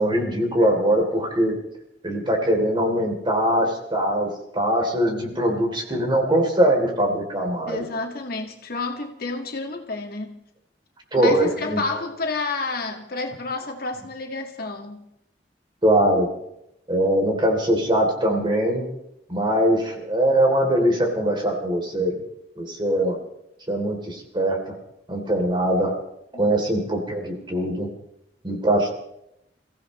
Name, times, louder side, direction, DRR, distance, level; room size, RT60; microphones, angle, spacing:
voice 1, 0.0-1.5 2.0-7.8 11.1-11.8 15.8-16.3 16.9-18.8 19.3-22.2 22.6-23.2 23.7-24.7 25.1-25.9 26.4-27.9 28.4-28.9, right 1 dB, 25° right, 3.2 m, -22 dB
voice 2, 7.7-10.4 11.2-15.0 26.3-26.4, left 3 dB, 55° left, 1.9 m, -30 dB
28.5 x 16.0 x 3.2 m
head